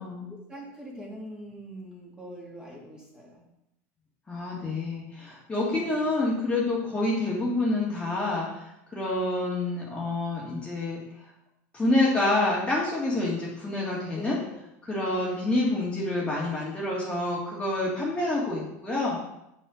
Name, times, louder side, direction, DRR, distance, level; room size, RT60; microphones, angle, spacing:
voice 1, 0.2-3.4 5.6-6.0 14.1-14.6 15.2-15.6, right 1 dB, 10° right, -3 dB, 2.6 m, -43 dB
voice 2, 4.3-11.3 11.7-14.4 14.8-19.2, left 2 dB, 15° left, -5 dB, 2.0 m, -28 dB
8.7 x 5.6 x 5.0 m, 0.85 s
supercardioid pair, 125°, 8 cm